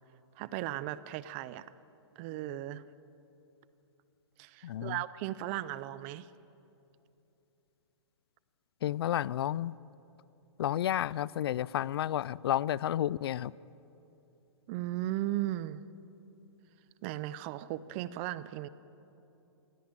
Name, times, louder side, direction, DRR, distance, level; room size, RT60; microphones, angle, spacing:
voice 1, 0.4-1.7 2.2-2.8 4.4-6.3 14.7-15.8 17.0-18.7, right 14 dB, 25° right, 17 dB, 0.5 m, -36 dB
voice 2, 4.6-5.0 8.8-9.7 10.6-13.5, left 11 dB, 55° left, 23 dB, 0.4 m, -31 dB
19.0 x 16.5 x 8.9 m, 2.9 s
hypercardioid pair, 155°, 15 cm